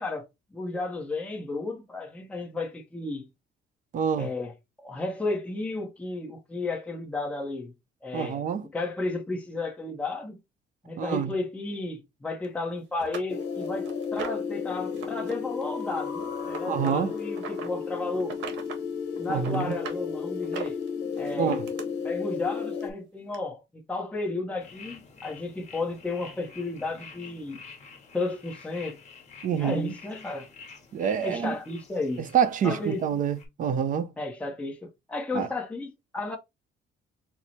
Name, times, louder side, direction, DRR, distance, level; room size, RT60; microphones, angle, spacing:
voice 1, 0.0-3.3 4.2-4.5 4.8-7.7 8.0-8.4 8.7-10.4 10.8-18.4 19.2-20.8 21.2-21.6 22.0-27.6 28.1-29.0 29.5-30.5 31.2-32.3 32.6-33.0 34.2-36.4, left 3 dB, 5° left, 0.7 m, -33 dB
voice 2, 3.9-4.3 8.1-8.6 11.0-11.3 16.7-17.1 19.3-19.7 21.4-21.6 29.4-29.9 30.9-31.6 32.3-34.1 35.3-35.5, right 8 dB, 45° right, 0.6 m, -27 dB
sound 1, 12.4-12.5 13.0-14.5 14.9-15.3 15.6-17.7 18.2-18.8 19.2-20.0 20.4-21.8 22.8-22.9 23.3-23.4, right 7 dB, 85° right, 1.0 m, -39 dB
sound 2, 13.3-22.9, left 6 dB, 70° left, 0.9 m, -33 dB
sound 3, 24.6-33.5, left 5 dB, 40° left, 1.4 m, -49 dB
4.5 x 2.0 x 4.1 m
cardioid pair, 155°, 19 cm